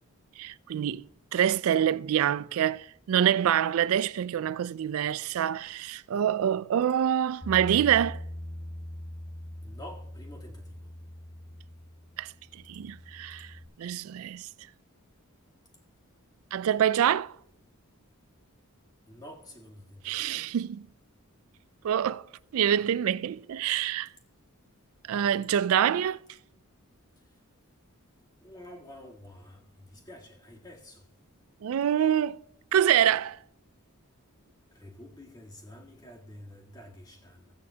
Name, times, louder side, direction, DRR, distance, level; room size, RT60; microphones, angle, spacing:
voice 1, 0.4-1.0 1.3-8.2 12.2-12.3 12.7-13.5 13.8-14.5 16.5-17.3 20.0-20.9 21.8-22.3 22.5-24.1 25.1-26.2 31.6-32.4 32.7-33.4, right 9 dB, 70° right, 0.3 m, -26 dB
Bass guitar, 7.4-13.7, left 1 dB, 45° left, 2.2 m, -42 dB
voice 2, 9.6-10.9 19.1-20.5 28.4-31.0 34.7-37.5, left 1 dB, 20° left, 1.7 m, -49 dB
16.0 x 8.5 x 2.8 m
head